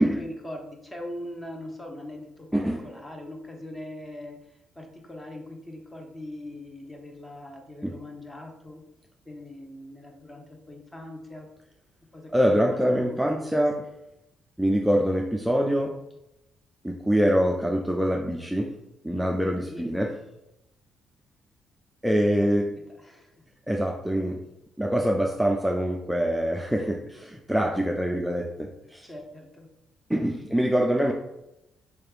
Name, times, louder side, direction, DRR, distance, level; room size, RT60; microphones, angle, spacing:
voice 1, 0.0-8.8 9.2-11.5 12.1-13.6 19.6-19.9 22.2-22.5 23.0-23.4 29.0-29.7, left 1 dB, 20° left, 2 dB, 1.0 m, -41 dB
voice 2, 2.5-2.9 7.8-7.9 12.3-13.9 14.6-16.0 16.8-18.7 19.0-20.2 22.0-22.8 23.7-24.4 24.8-29.1 30.1-31.1, equal, 5° right, 0 dB, 0.4 m, -24 dB
4.6 x 3.3 x 2.4 m, 0.88 s
supercardioid pair, 65°, 0 cm